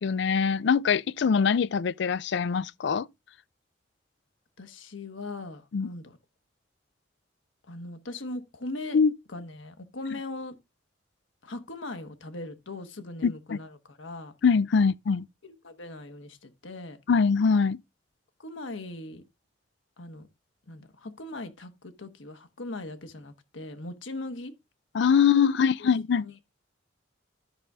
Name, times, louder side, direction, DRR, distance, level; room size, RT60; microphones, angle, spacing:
voice 1, 0.0-3.1 5.7-5.9 8.9-9.1 13.2-13.6 14.4-15.2 17.1-17.8 24.9-26.3, left 6 dB, 65° left, 0.4 m, -23 dB
voice 2, 4.6-6.2 7.7-9.0 9.3-10.6 11.4-14.3 15.4-17.0 18.4-19.2 20.0-20.3 20.7-24.5 25.8-26.3, left 2 dB, 90° left, 1.3 m, -40 dB
12.0 x 5.5 x 3.5 m
head